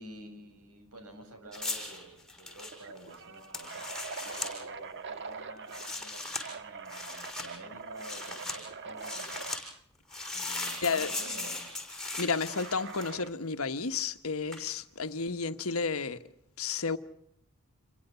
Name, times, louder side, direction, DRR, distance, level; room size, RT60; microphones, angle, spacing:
voice 1, 0.0-9.5 10.3-11.6, right 1 dB, 80° right, 7.4 m, -49 dB
sound 1, 1.5-4.5 5.6-6.4 6.9-7.5 8.0-8.6 9.0-9.6 10.1-13.3 14.5-14.7, left 2 dB, 5° left, 5.8 m, -38 dB
sound 2, 1.5-1.7 2.0-2.1 2.7-6.0 6.4-9.6 10.9-11.3 12.5-13.4, right 5 dB, 55° right, 1.3 m, -44 dB
voice 2, 12.2-16.2 16.6-17.0, left 4 dB, 70° left, 1.3 m, -32 dB
28.0 x 22.5 x 6.9 m
head